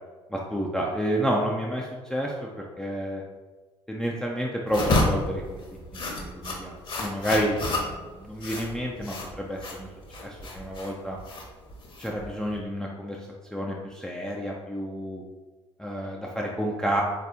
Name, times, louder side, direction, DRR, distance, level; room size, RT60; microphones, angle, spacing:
voice 1, 0.3-3.2 3.9-5.6 5.9-9.9 10.2-11.2 12.0-13.2 13.5-15.2 15.8-17.0, equal, 5° left, -3 dB, 0.5 m, -30 dB
sound 1, 4.7-12.6, left 1 dB, 35° left, 0.9 m, -30 dB
4.0 x 2.9 x 3.4 m, 1.3 s
figure-of-eight pair, 50°, 15 cm